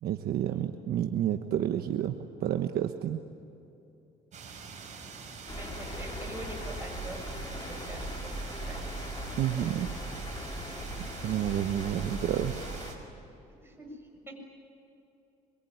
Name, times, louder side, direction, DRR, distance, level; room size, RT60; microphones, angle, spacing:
voice 1, 0.0-3.2 9.4-9.9 11.2-12.7, right 11 dB, 65° right, 7 dB, 1.2 m, -30 dB
sound 1, 4.3-13.0, right 5 dB, 45° right, 5.8 m, -45 dB
sound 2, 5.5-12.9, equal, 25° left, 6.1 m, -39 dB
voice 2, 5.5-7.2 7.5-9.8 13.6-13.9 14.3-14.4, right 2 dB, 15° right, 1 dB, 7.4 m, -45 dB
26.0 x 24.0 x 9.5 m, 2.8 s
cardioid pair, 110°, 17 cm